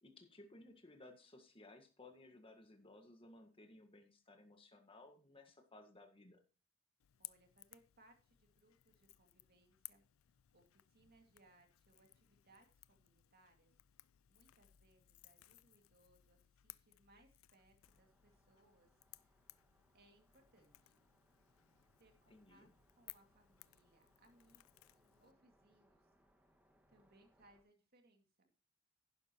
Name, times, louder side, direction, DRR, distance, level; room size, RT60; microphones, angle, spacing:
voice 1, 0.0-6.4 22.3-22.7, left 2 dB, 25° left, 4 dB, 1.7 m, -60 dB
Crackle / Crack, 7.0-25.3, left 18 dB, 75° left, 0.4 m, -62 dB
voice 2, 7.2-10.0 10.5-13.7 14.3-19.3 19.9-21.0 22.0-22.7 23.0-24.9 25.2-26.1 26.9-28.5, right 2 dB, 50° right, 4 dB, 2.3 m, -70 dB
sound 1, 17.8-27.6, equal, 10° right, 1.7 m, -76 dB
11.0 x 10.5 x 3.0 m, 0.34 s
head